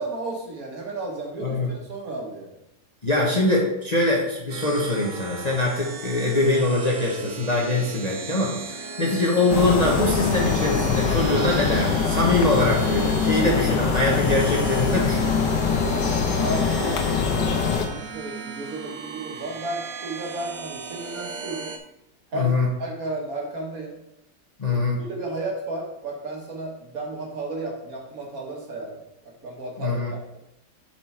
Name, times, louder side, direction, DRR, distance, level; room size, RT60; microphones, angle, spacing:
voice 1, 0.0-2.6 15.8-21.7 22.3-22.5 22.8-24.0 24.7-29.0 29.2-30.2, right 2 dB, 55° right, 0 dB, 1.8 m, -33 dB
voice 2, 3.0-15.4 22.3-22.7 24.6-25.0 29.8-30.1, left 2 dB, 30° left, -2 dB, 1.0 m, -23 dB
sound 1, 4.5-21.8, right 5 dB, 90° right, 1.5 m, -37 dB
sound 2, 9.5-17.9, left 5 dB, 85° left, 1.5 m, -23 dB
7.6 x 4.6 x 4.3 m, 0.84 s
omnidirectional pair, 1.8 m